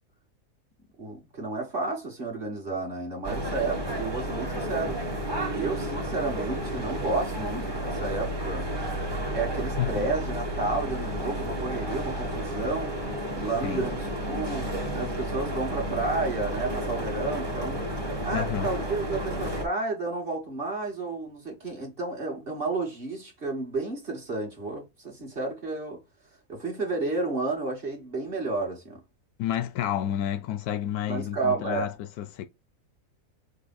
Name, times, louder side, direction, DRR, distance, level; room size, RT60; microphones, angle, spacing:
voice 1, 1.0-5.0 5.5-8.7 9.3-13.0 13.3-14.0 14.2-14.7 14.9-17.8 18.2-26.0 26.5-29.0 31.1-31.9, right 3 dB, 40° right, 1.6 m, -31 dB
sound 1, 3.2-19.7, right 1 dB, 20° right, 0.9 m, -32 dB
voice 2, 18.3-18.7 29.4-32.5, left 11 dB, 80° left, 1.1 m, -30 dB
5.5 x 2.1 x 4.1 m
omnidirectional pair, 1.6 m